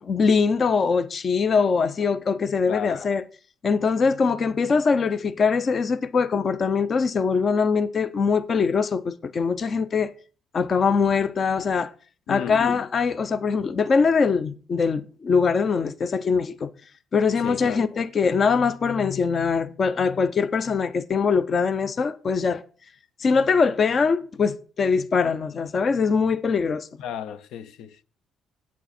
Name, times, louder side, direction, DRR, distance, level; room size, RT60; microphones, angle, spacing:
voice 1, 0.0-3.2 3.6-10.1 10.5-11.9 12.3-16.7 17.1-22.6 23.2-26.9, left 5 dB, 30° left, 0.4 m, -22 dB
voice 2, 2.7-3.0 12.3-12.6 17.4-17.8 27.0-28.0, left 9 dB, 75° left, 0.6 m, -34 dB
8.4 x 8.3 x 4.2 m
cardioid pair, 160°, 0 cm